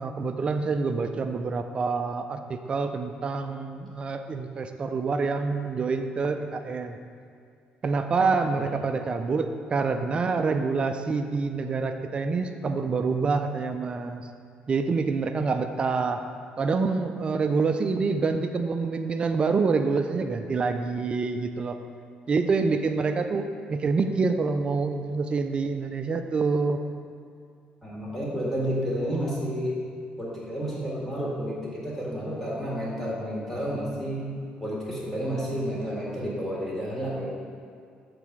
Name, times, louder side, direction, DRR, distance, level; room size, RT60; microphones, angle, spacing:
voice 1, 0.0-7.0 7.8-14.2 14.7-16.2 16.6-21.8 22.3-26.8, right 4 dB, 30° right, 7 dB, 0.4 m, -26 dB
voice 2, 27.8-29.8 30.2-34.3 34.6-37.3, equal, 10° left, -6 dB, 1.8 m, -30 dB
6.7 x 4.1 x 6.0 m, 2.3 s
cardioid pair, 130°, 3 cm